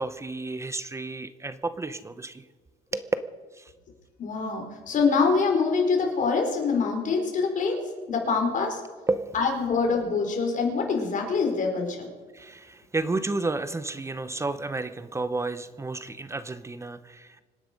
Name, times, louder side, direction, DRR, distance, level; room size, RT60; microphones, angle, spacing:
voice 1, 0.0-2.4 2.9-3.2 3.5-3.7 9.1-9.3 12.3-17.4, right 2 dB, 15° right, 13 dB, 0.8 m, -31 dB
voice 2, 4.2-7.8 8.1-8.8 9.3-12.1, left 4 dB, 50° left, 2 dB, 4.7 m, -25 dB
25.5 x 10.0 x 5.3 m, 1.4 s
cardioid pair, 110°, 17 cm